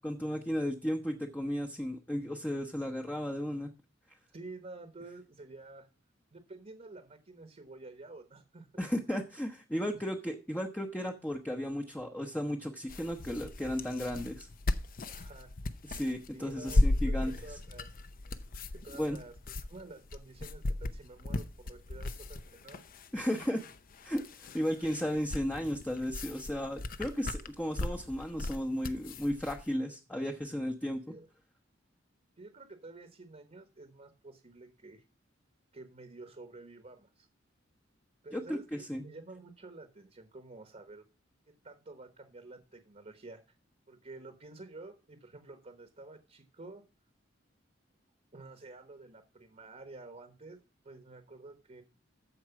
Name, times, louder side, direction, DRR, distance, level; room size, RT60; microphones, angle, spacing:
voice 1, 0.0-3.7 8.8-14.5 15.9-17.3 19.0-19.2 23.1-23.6 24.1-31.0 38.3-39.0, equal, 10° left, 3 dB, 0.9 m, -34 dB
voice 2, 4.3-5.9 6.3-8.7 9.9-10.0 15.0-15.5 16.3-17.9 18.7-22.8 31.1-31.3 32.4-35.0 35.7-37.3 38.2-41.0 41.5-43.4 43.9-46.8 48.3-51.8, right 2 dB, 40° right, 7 dB, 1.2 m, -50 dB
sound 1, 12.9-29.6, left 2 dB, 50° left, 0.7 m, -35 dB
14.0 x 4.7 x 5.9 m, 0.33 s
head